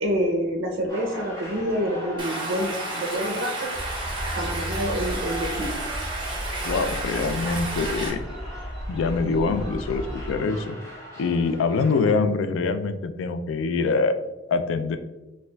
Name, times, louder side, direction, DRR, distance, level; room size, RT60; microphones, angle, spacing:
voice 1, 0.0-3.8 4.3-5.8, equal, 75° right, 2 dB, 0.5 m, -27 dB
sound 1, 0.9-12.1, equal, 15° left, 0.9 m, -40 dB
Stream, 2.2-8.1, right 2 dB, 25° right, 0.7 m, -32 dB
sound 2, 3.7-10.3, equal, 5° right, 0.3 m, -35 dB
voice 2, 6.6-8.2 8.9-10.8 11.2-14.2 14.5-15.0, left 4 dB, 75° left, 10 dB, 0.3 m, -24 dB
4.3 x 2.3 x 2.2 m, 1.1 s
head